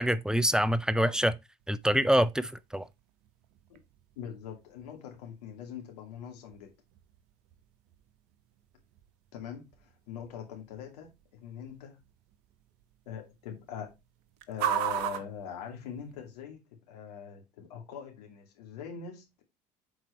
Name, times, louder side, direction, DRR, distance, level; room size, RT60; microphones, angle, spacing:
voice 1, 0.0-1.3 1.7-2.9, equal, 5° right, 0.6 m, -25 dB
sound 1, 1.6-16.4, right 10 dB, 65° right, 0.9 m, -42 dB
voice 2, 4.2-6.7 9.3-12.0 13.1-13.9 14.5-19.4, left 8 dB, 75° left, 2.4 m, -42 dB
7.3 x 4.6 x 4.2 m
hypercardioid pair, 70°, 20 cm